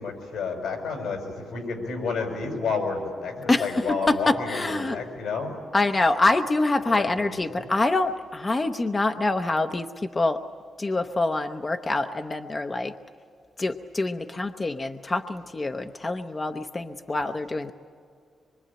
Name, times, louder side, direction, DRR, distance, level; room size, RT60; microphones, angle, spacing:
voice 1, 0.0-5.6 6.8-7.6, left 4 dB, 85° left, 3 dB, 6.6 m, -30 dB
voice 2, 3.5-5.0 5.7-10.4 10.8-12.9 13.6-17.7, left 2 dB, 20° left, 7 dB, 0.7 m, -25 dB
25.5 x 23.5 x 8.8 m, 2.3 s
cardioid pair, 135°, 0 cm